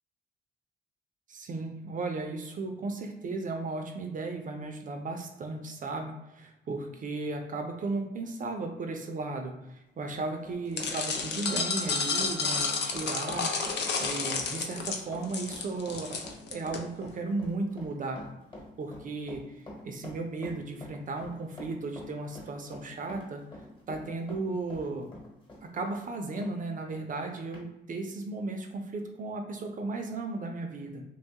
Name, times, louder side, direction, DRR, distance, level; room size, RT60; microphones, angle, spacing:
voice 1, 1.3-13.5 14.0-16.2 16.5-18.3 18.8-23.4 23.9-25.1 25.7-31.0, right 3 dB, 40° right, 4 dB, 0.4 m, -35 dB
Run, 9.9-26.5 26.9-27.0 27.5-27.7, left 1 dB, 25° left, 1.1 m, -47 dB
sound 1, 10.8-16.8, left 4 dB, 60° left, 0.5 m, -31 dB
2.9 x 2.3 x 2.7 m, 0.90 s
cardioid pair, 90°, 20 cm